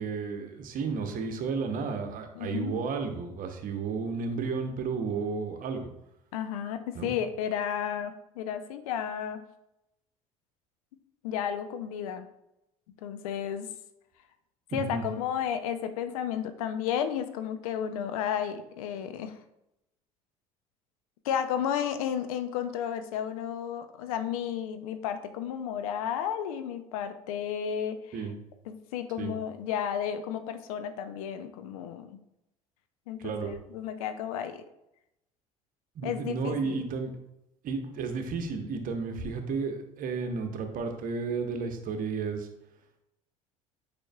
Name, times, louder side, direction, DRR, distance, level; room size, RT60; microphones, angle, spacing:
voice 1, 0.0-5.9 6.9-7.1 14.7-15.1 28.1-28.3 29.2-29.3 33.2-33.5 35.9-37.1 37.6-42.5, right 5 dB, 45° right, 5 dB, 1.0 m, -32 dB
voice 2, 2.4-2.8 6.3-9.4 11.2-12.3 13.0-13.7 14.7-19.4 21.2-28.2 28.7-32.2 33.1-34.6 36.0-36.8, left 9 dB, 70° left, 9 dB, 0.6 m, -33 dB
8.8 x 5.2 x 2.3 m, 0.86 s
figure-of-eight pair, 60°, 19 cm